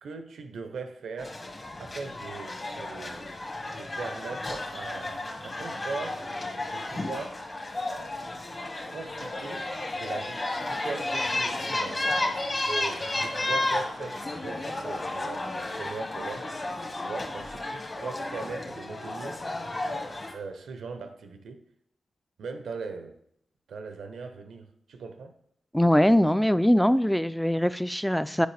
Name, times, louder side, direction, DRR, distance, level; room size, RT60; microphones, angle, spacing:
voice 1, 0.0-1.4 1.8-3.5 3.8-6.2 6.7-7.5 8.9-9.7 9.9-15.4 15.8-16.5 16.9-19.4 20.3-21.6 22.4-23.2 23.7-25.4, right 4 dB, 80° right, 0.6 m, -39 dB
sound 1, 1.2-20.3, left 2 dB, 40° left, 1.3 m, -33 dB
voice 2, 25.7-28.5, equal, 5° left, 0.3 m, -22 dB
8.0 x 4.7 x 3.3 m
cardioid pair, 50°, 0 cm